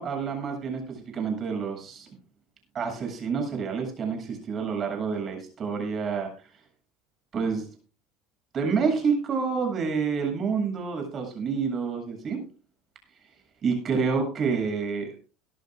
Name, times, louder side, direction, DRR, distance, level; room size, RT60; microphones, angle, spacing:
voice 1, 0.0-2.1 2.7-6.3 7.3-7.7 8.5-12.4 13.6-15.2, right 5 dB, 35° right, 3 dB, 7.8 m, -28 dB
22.5 x 12.5 x 2.5 m, 0.37 s
supercardioid pair, 110°, 0 cm